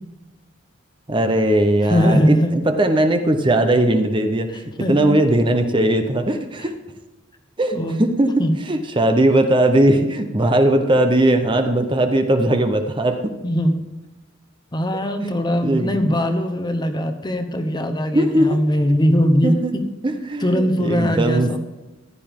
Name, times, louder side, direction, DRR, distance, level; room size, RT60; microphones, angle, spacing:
voice 1, 1.1-6.7 7.6-8.3 8.7-13.2 15.6-16.2 18.1-18.6 19.4-19.7 20.0-21.6, right 1 dB, 25° right, 6 dB, 0.7 m, -19 dB
voice 2, 1.8-2.5 4.8-5.1 7.7-8.0 8.4-8.6 13.4-13.8 14.7-19.8 20.4-21.6, equal, 20° left, 7 dB, 1.0 m, -20 dB
15.0 x 11.0 x 3.7 m, 1.0 s
head